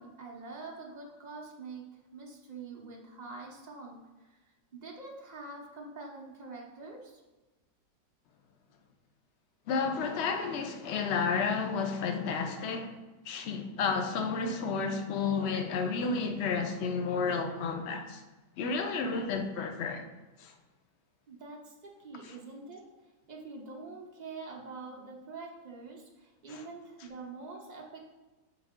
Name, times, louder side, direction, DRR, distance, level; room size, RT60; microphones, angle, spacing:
voice 1, 0.0-4.4 4.7-7.2 21.3-22.9 23.3-28.2, right 3 dB, 55° right, 0.4 m, -45 dB
voice 2, 9.7-12.9 13.3-18.2 18.6-20.0 20.4-20.5 26.5-26.6, left 5 dB, 80° left, 0.6 m, -31 dB
7.8 x 3.4 x 3.6 m
omnidirectional pair, 1.9 m